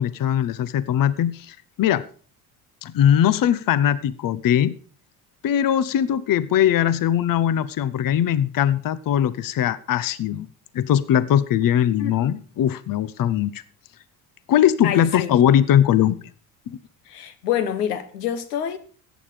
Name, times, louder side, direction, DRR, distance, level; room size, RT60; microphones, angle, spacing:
voice 1, 0.0-2.1 2.8-4.7 5.4-10.5 10.7-13.6 14.5-16.3 16.7-16.8, left 10 dB, 45° left, 0.9 m, -20 dB
voice 2, 12.0-12.3 14.8-15.3 17.1-18.8, left 9 dB, 85° left, 1.1 m, -27 dB
14.0 x 9.3 x 5.0 m
hypercardioid pair, 55°, 45 cm